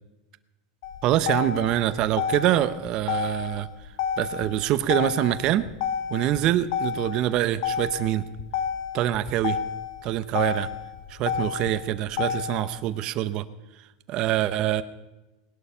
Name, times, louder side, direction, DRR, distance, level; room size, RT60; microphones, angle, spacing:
Motor vehicle (road), 0.8-12.8, left 8 dB, 65° left, 1.8 m, -31 dB
voice 1, 1.0-3.7 4.2-5.7 6.1-8.2 8.9-9.6 10.0-10.7 11.1-13.4 14.1-14.8, right 13 dB, 35° right, 13 dB, 0.7 m, -25 dB
19.5 x 11.5 x 5.6 m, 1.1 s
supercardioid pair, 160°, 2 cm